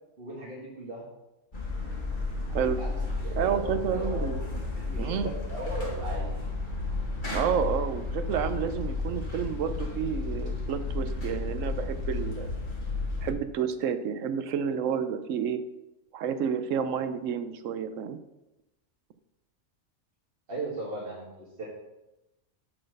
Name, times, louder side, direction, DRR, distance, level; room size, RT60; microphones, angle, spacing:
voice 1, 0.2-1.1 2.6-6.3 20.5-21.7, right 2 dB, 40° right, -5 dB, 1.6 m, -38 dB
sound 1, 1.5-13.3, left 3 dB, 35° left, 1.8 m, -32 dB
voice 2, 3.4-4.4 5.0-5.3 7.3-12.5 13.2-15.6 16.1-18.2, right 7 dB, 65° right, 11 dB, 1.0 m, -30 dB
8.6 x 4.3 x 6.5 m, 0.95 s
omnidirectional pair, 1.6 m